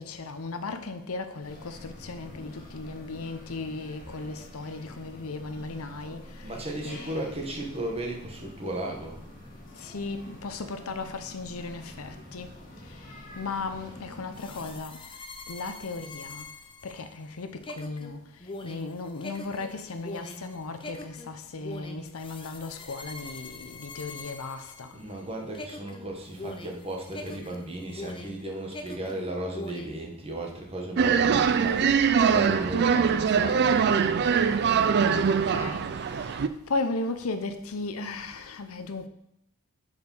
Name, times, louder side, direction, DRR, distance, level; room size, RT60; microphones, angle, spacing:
voice 1, 0.0-7.4 9.7-12.5 12.8-15.1 15.5-16.5 16.8-25.0 34.6-39.1, left 3 dB, 65° left, 0.7 m, -36 dB
sound 1, 1.4-14.8, left 1 dB, 40° left, 1.9 m, -47 dB
voice 2, 6.4-9.2 24.9-33.8, right 1 dB, 25° right, 1.2 m, -35 dB
sound 2, 14.3-25.2 25.5-28.4 28.7-30.0, left 2 dB, 25° left, 0.6 m, -43 dB
sound 3, 31.0-36.5, right 6 dB, 50° right, 0.4 m, -23 dB
6.4 x 4.9 x 5.4 m
head